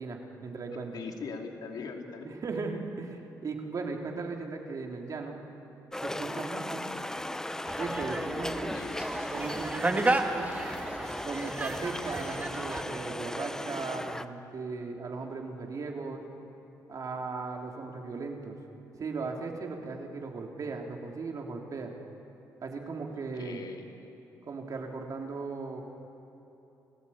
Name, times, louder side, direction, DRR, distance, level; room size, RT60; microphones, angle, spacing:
voice 1, 0.0-1.0 2.2-5.4 6.0-6.8 7.8-8.7 9.3-10.5 11.2-16.2 16.9-18.6 19.0-21.9 22.6-23.6 24.4-25.8, right 4 dB, 50° right, 1 dB, 3.1 m, -37 dB
voice 2, 0.9-2.3 8.4-9.0 23.1-23.9, left 4 dB, 65° left, 3 dB, 2.7 m, -41 dB
sound 1, 5.9-14.3, left 1 dB, 10° left, 0.8 m, -36 dB
sound 2, 7.7-12.8, right 2 dB, 20° right, 1.7 m, -33 dB
29.5 x 15.5 x 8.7 m, 3.0 s
cardioid pair, 85°, 7 cm